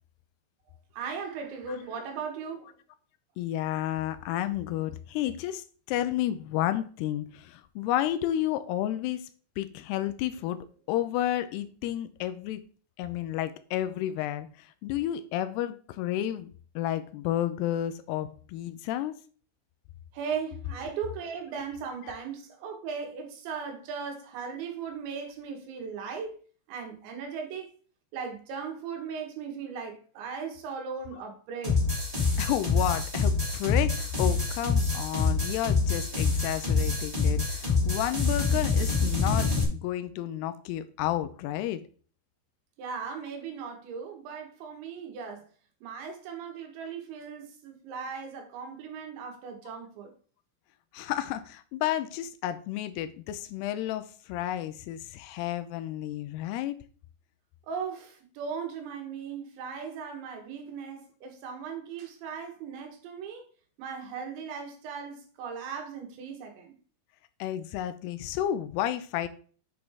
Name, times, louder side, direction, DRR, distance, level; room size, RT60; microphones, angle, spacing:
voice 1, 0.9-2.7 20.1-26.4 26.7-27.7 28.1-31.8 42.8-45.5 45.8-50.1 57.7-63.4 63.8-66.7, right 6 dB, 80° right, 3.9 m, -38 dB
voice 2, 3.4-9.3 9.6-10.6 10.9-12.6 13.0-19.2 22.0-22.2 32.4-41.8 50.9-56.8 67.4-69.3, left 12 dB, 85° left, 2.5 m, -31 dB
sound 1, 31.6-39.6, left 4 dB, 10° right, 2.8 m, -26 dB
8.6 x 6.4 x 3.7 m
omnidirectional pair, 5.2 m